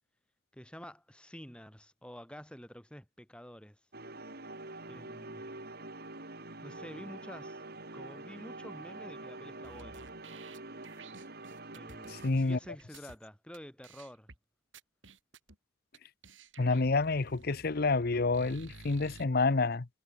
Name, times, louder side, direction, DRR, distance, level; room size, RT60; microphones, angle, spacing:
voice 1, 0.5-3.8 4.9-5.4 6.6-7.6 7.9-10.2 11.7-14.3, equal, 5° left, 6.6 m, -49 dB
sound 1, 3.9-12.3, right 2 dB, 55° right, 5.0 m, -46 dB
sound 2, 9.6-13.2 13.5-13.6 13.8-14.4 14.7-15.6 15.9-16.0 16.2-19.2, right 3 dB, 85° right, 4.2 m, -53 dB
voice 2, 12.1-12.6 16.6-19.9, left 3 dB, 55° left, 0.8 m, -28 dB
head